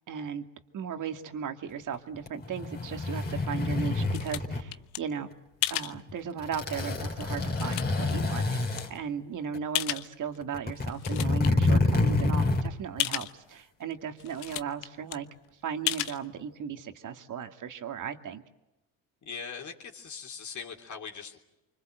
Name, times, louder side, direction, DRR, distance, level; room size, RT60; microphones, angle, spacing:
voice 1, 0.1-0.5 0.7-5.3 5.7-15.3 15.6-18.4, right 7 dB, 50° right, 6 dB, 2.3 m, -36 dB
sound 1, 2.1-4.6 5.9-6.1 6.4-8.9 9.5-9.6 10.4-12.7 13.0-13.1, left 2 dB, 25° left, 3.5 m, -27 dB
sound 2, 3.5-5.0 5.6-5.9 6.6-6.7 7.2-8.1 8.8-8.9 9.7-10.4 10.7-11.5 11.9-12.0 12.2-12.3 13.0-13.3 13.9-14.0 14.2-14.9 15.1-15.2 15.9-16.2, left 16 dB, 85° left, 1.1 m, -33 dB
voice 2, 19.2-21.4, left 6 dB, 45° left, 2 dB, 3.4 m, -41 dB
26.0 x 25.0 x 7.9 m, 0.96 s
supercardioid pair, 95°, 41 cm